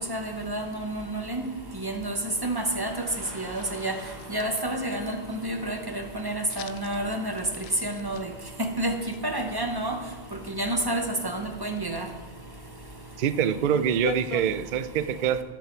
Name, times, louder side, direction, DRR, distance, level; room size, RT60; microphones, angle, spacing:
voice 1, 0.1-1.4 1.8-2.2 2.4-2.9 3.3-3.9 4.3-7.4 7.8-8.2 8.6-8.9 9.2-10.0 10.6-12.1, right 1 dB, 20° right, 4 dB, 0.9 m, -29 dB
Car passing by / Traffic noise roadway noise, 2.5-11.6, right 1 dB, 40° right, 1.8 m, -50 dB
sound 1, 3.3-5.0 6.5-7.0 7.4-9.2 9.8-10.1 11.6-12.0 12.9-13.0 13.2-14.5, left 8 dB, 70° left, 0.3 m, -40 dB
voice 2, 13.2-15.4, right 8 dB, 60° right, 13 dB, 0.6 m, -25 dB
13.0 x 6.8 x 4.5 m, 1.2 s
omnidirectional pair, 1.2 m